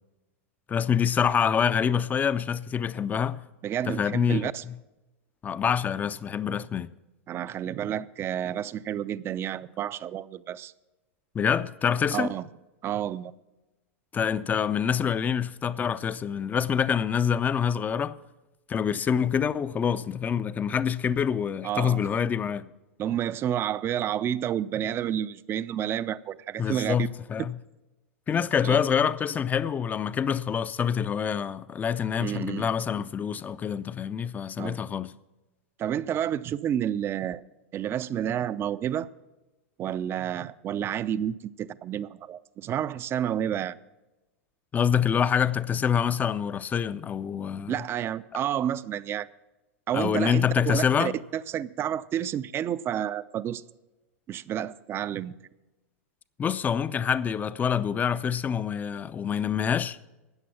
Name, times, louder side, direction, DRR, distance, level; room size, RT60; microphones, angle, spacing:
voice 1, 0.7-3.4 3.9-4.7 5.4-6.9 11.3-12.3 14.1-18.2 18.7-22.7 26.6-27.6 28.3-35.1 44.7-47.7 49.9-51.2 56.4-60.0, left 7 dB, 20° left, 0.5 m, -26 dB
voice 2, 3.6-4.6 7.3-10.7 12.1-12.4 12.8-13.3 21.6-22.0 23.0-27.1 28.6-28.8 32.2-32.7 34.6-34.8 35.8-37.4 37.7-39.1 39.8-43.8 47.7-49.3 49.9-53.6 54.3-55.4, right 10 dB, 30° right, 0.5 m, -30 dB
14.0 x 9.2 x 5.8 m
hypercardioid pair, 110°, 7 cm